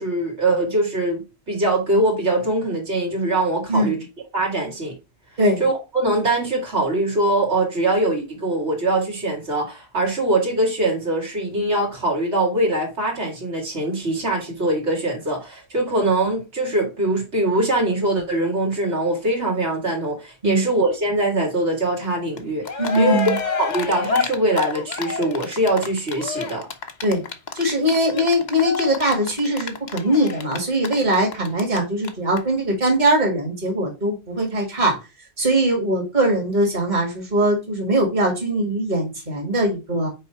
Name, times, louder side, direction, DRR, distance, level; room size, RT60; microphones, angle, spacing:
voice 1, 0.0-4.0 4.3-4.9 5.6-26.7, right 2 dB, 75° right, 2.3 m, -22 dB
Cheering, 22.4-22.5 22.6-31.8 32.0-32.1 32.4-32.5, left 5 dB, 45° left, 0.8 m, -28 dB
voice 2, 22.8-23.4 27.0-27.2 27.5-35.0 35.4-40.1, right 1 dB, 40° right, 2.1 m, -21 dB
5.5 x 4.5 x 4.4 m
omnidirectional pair, 1.2 m